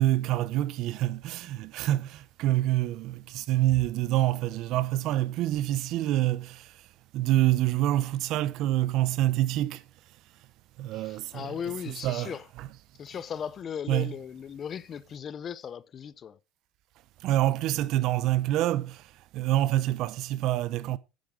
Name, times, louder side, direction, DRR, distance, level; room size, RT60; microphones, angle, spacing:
voice 1, 0.0-6.6 7.1-9.8 10.8-11.5 11.9-12.7 13.9-14.1 17.2-19.0 19.3-21.0, right 14 dB, 60° right, 0.8 m, -26 dB
voice 2, 10.9-12.5 13.0-16.4, left 8 dB, 40° left, 0.6 m, -37 dB
10.5 x 8.4 x 3.8 m
supercardioid pair, 100°, 0 cm